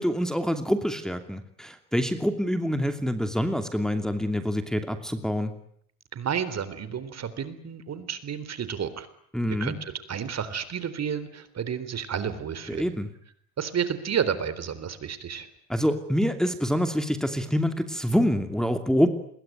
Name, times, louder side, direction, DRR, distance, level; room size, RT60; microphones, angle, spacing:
voice 1, 0.0-5.5 9.3-9.7 12.7-13.1 15.7-19.1, equal, ahead, 6 dB, 2.8 m, -26 dB
voice 2, 6.1-9.1 9.5-12.9 13.6-15.5, right 7 dB, 40° right, 14 dB, 3.8 m, -31 dB
27.5 x 22.0 x 9.3 m, 0.66 s
supercardioid pair, 100°, 40 cm